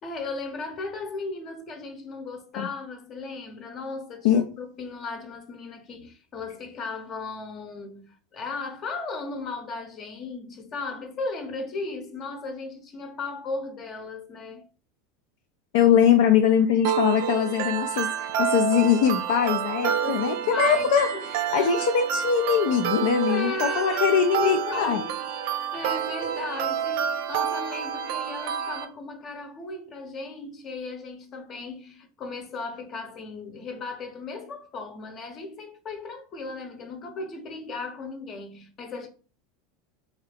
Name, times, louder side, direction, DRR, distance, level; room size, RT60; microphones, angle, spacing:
voice 1, 0.0-14.7 19.8-21.9 23.3-25.2 25.7-39.1, left 3 dB, 40° left, 0.8 m, -36 dB
voice 2, 15.7-25.0, left 8 dB, 70° left, 0.4 m, -22 dB
sound 1, 16.8-28.8, right 9 dB, 65° right, 0.4 m, -28 dB
3.1 x 2.5 x 3.3 m
hypercardioid pair, 90°, 0 cm